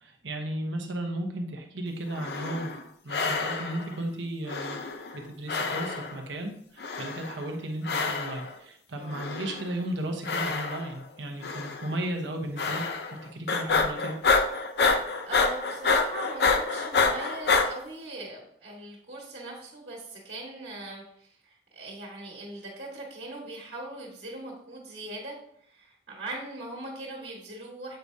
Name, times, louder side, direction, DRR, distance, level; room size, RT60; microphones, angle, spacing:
voice 1, 0.0-2.7 3.0-4.8 5.1-14.1, right 1 dB, 85° right, 2 dB, 1.1 m, -35 dB
sound 1, 2.1-2.8 3.1-3.9 4.5-5.2 5.5-6.2 6.8-7.4 7.8-8.5 9.1-9.7 10.2-11.0 11.4-11.9 12.6-13.2 13.5-17.7, left 4 dB, 60° left, 0.6 m, -27 dB
voice 2, 15.2-25.3 25.7-28.0, right 2 dB, 60° right, -3 dB, 1.7 m, -40 dB
7.9 x 4.7 x 2.7 m, 0.67 s
head